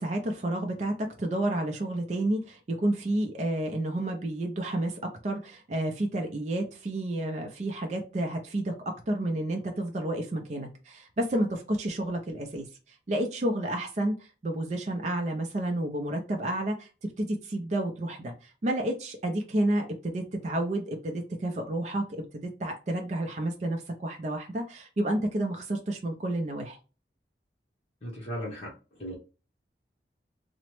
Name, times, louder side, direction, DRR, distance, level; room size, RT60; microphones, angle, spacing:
voice 1, 0.0-12.7 13.1-26.8, right 1 dB, 40° right, 2 dB, 0.4 m, -30 dB
voice 2, 28.0-28.7 29.0-29.1, equal, 35° left, -4 dB, 0.8 m, -36 dB
2.9 x 2.0 x 3.0 m, 0.33 s
head